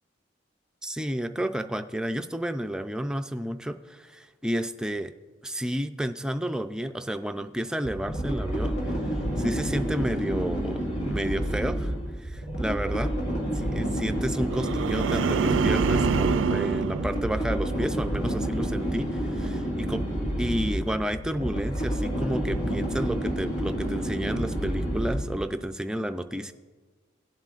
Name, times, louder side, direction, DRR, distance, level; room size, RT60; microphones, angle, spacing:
voice 1, 0.8-5.1 5.4-8.8 9.4-11.9 12.2-13.1 13.5-20.0 20.4-26.5, equal, 5° right, 7 dB, 0.3 m, -31 dB
sound 1, 7.8-25.5, equal, 75° left, 2.2 m, -29 dB
sound 2, 14.5-17.9 18.3-18.7, right 5 dB, 90° right, 0.4 m, -26 dB
17.5 x 7.6 x 2.5 m, 1.4 s
head